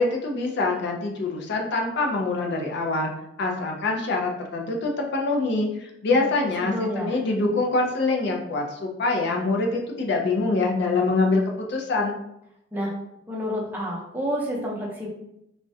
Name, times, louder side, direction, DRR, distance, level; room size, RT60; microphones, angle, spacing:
voice 1, 0.0-3.1 3.4-11.4 11.7-12.2, left 3 dB, 65° left, 1 dB, 0.4 m, -24 dB
voice 2, 6.6-7.2 12.7-12.9 13.3-15.1, equal, 10° right, -3 dB, 0.5 m, -29 dB
2.3 x 2.1 x 2.6 m, 0.82 s
head